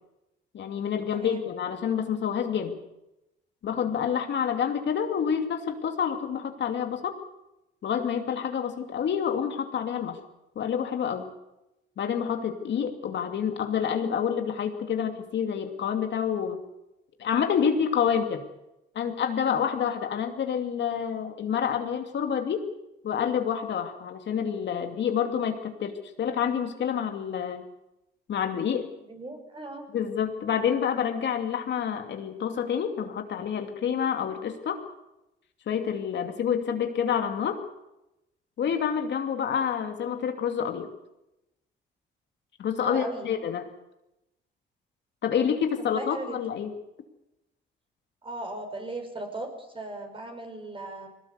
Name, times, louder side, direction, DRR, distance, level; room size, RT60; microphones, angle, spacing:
voice 1, 0.5-2.8 3.6-7.1 7.8-10.2 10.6-11.3 12.0-16.6 17.2-18.4 18.9-22.6 23.0-25.9 26.2-27.7 28.3-28.9 29.9-34.8 35.7-37.6 38.6-40.9 42.6-43.7 45.2-46.7, left 8 dB, 65° left, 5 dB, 2.6 m, -28 dB
voice 2, 1.1-1.4 19.9-20.0 29.0-29.8 42.8-43.3 45.8-46.4 48.2-51.1, right 2 dB, 25° right, 5 dB, 5.5 m, -37 dB
21.5 x 18.5 x 8.2 m, 0.91 s
cardioid pair, 90°, 20 cm